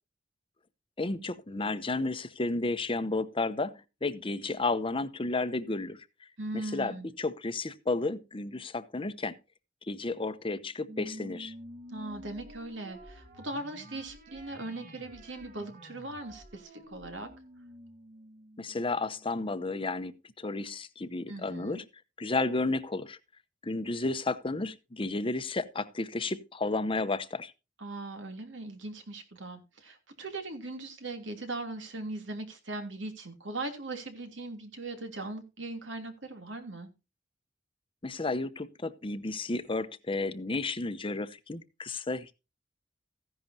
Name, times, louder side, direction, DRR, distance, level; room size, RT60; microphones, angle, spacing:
voice 1, 1.0-6.1 6.5-9.4 9.8-11.5 18.6-21.8 22.2-23.2 23.6-27.5 38.0-42.3, left 3 dB, 30° left, 0.8 m, -32 dB
voice 2, 6.4-7.1 11.9-17.3 21.3-21.8 27.8-36.9, right 2 dB, 80° right, 3.0 m, -39 dB
sound 1, 10.9-19.6, equal, 50° right, 2.1 m, -50 dB
15.0 x 10.5 x 2.8 m
head